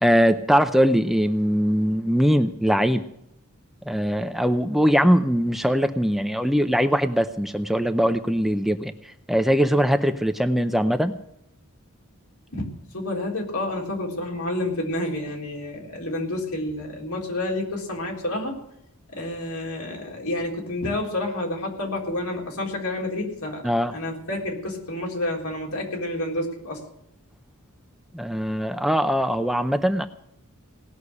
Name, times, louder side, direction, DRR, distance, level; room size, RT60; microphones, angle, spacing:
voice 1, 0.0-3.0 3.9-11.1 23.6-23.9 28.1-30.1, equal, ahead, 8 dB, 0.6 m, -21 dB
voice 2, 12.9-18.6 19.1-23.6 23.9-26.8, left 1 dB, 85° left, 0 dB, 4.0 m, -29 dB
18.5 x 6.5 x 9.7 m, 0.77 s
head